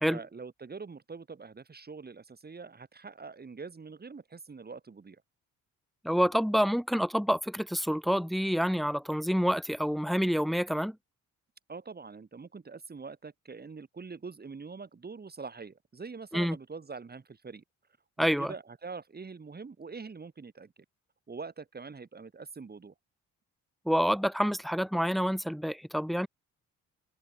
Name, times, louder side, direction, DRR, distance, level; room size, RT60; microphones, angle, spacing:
voice 1, 0.1-5.2 11.7-17.6 18.2-20.7 21.3-22.9, right 4 dB, 30° right, 6.6 m, -44 dB
voice 2, 6.0-11.0 16.3-16.6 18.2-18.5 23.9-26.3, equal, ahead, 1.8 m, -28 dB
cardioid pair, 90°, 30 cm